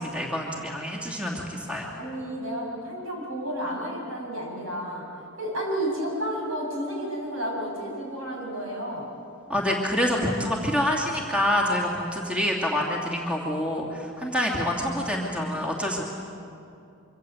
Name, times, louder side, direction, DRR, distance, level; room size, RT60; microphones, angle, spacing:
voice 1, 0.0-1.9 9.5-16.0, left 1 dB, 5° right, -1 dB, 2.7 m, -27 dB
voice 2, 1.9-5.1 5.4-9.1, equal, 75° right, -1 dB, 7.9 m, -31 dB
26.0 x 25.0 x 8.0 m, 2.6 s
head